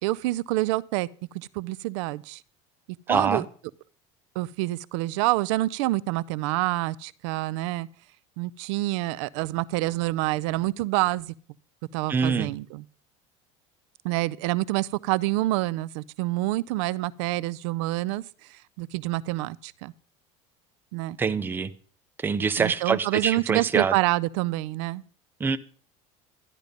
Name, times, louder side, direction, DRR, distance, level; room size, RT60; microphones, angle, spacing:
voice 1, 0.0-1.1 1.3-2.4 3.1-3.4 4.4-7.9 8.4-11.3 11.9-12.8 14.0-18.2 18.5-19.9 20.9-21.2 22.6-25.0, right 18 dB, 80° right, 0.5 m, -27 dB
voice 2, 3.1-3.5 12.1-12.5 21.2-21.7 22.2-23.9 25.4-25.6, right 5 dB, 15° right, 0.5 m, -24 dB
12.0 x 10.5 x 5.1 m
cardioid pair, 150°, 15 cm